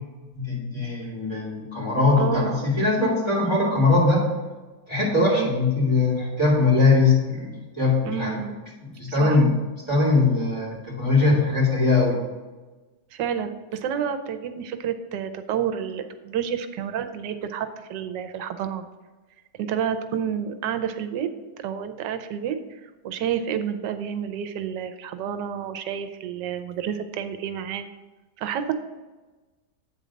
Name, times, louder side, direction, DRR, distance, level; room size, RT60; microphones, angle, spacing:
voice 1, 0.3-4.2 4.9-8.4 9.0-9.6 9.9-12.2, left 3 dB, 15° left, -6 dB, 2.7 m, -21 dB
voice 2, 2.2-2.7 5.3-5.5 8.1-8.6 9.1-9.4 13.1-18.8 19.6-21.3 21.6-27.9 28.4-28.7, right 8 dB, 90° right, 8 dB, 1.3 m, -29 dB
8.8 x 4.0 x 6.3 m, 1.2 s
omnidirectional pair, 1.8 m